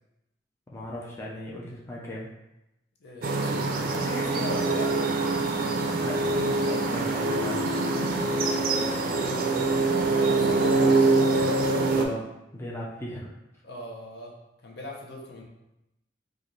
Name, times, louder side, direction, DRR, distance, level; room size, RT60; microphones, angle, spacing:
voice 1, 0.7-2.3 6.0-7.8 11.9-13.3, equal, 15° left, -4 dB, 0.5 m, -37 dB
voice 2, 3.0-5.1 8.7-9.8 10.1-11.1 13.6-14.3 14.6-15.4, left 1 dB, 65° left, -1 dB, 0.7 m, -38 dB
sound 1, 3.2-12.1, right 3 dB, 55° right, 0.4 m, -24 dB
3.1 x 2.4 x 3.9 m, 0.90 s
head